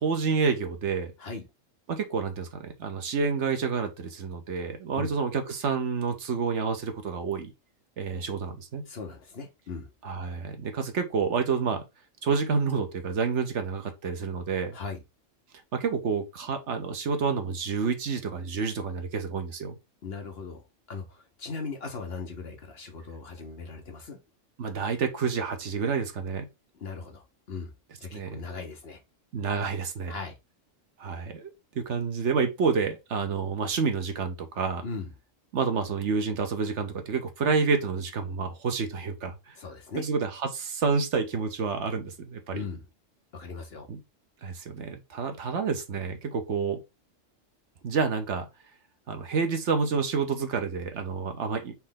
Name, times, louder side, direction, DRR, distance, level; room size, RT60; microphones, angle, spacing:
voice 1, 0.0-1.1 1.9-7.5 8.0-8.8 10.0-11.8 12.2-14.8 15.7-19.7 24.6-26.5 28.1-28.4 29.3-30.2 31.0-31.5 31.7-34.8 35.5-39.4 40.0-42.6 43.9-44.0 44.4-46.8 47.8-48.5 49.1-51.7, right 5 dB, 65° right, 1.1 m, -29 dB
voice 2, 8.9-9.9 14.7-15.0 20.0-20.6 20.9-24.2 26.7-27.7 28.0-29.0 30.1-30.3 34.8-35.1 39.6-40.0 42.5-42.9 43.3-43.9, left 4 dB, 55° left, 1.1 m, -38 dB
4.3 x 3.2 x 3.7 m
omnidirectional pair, 1.3 m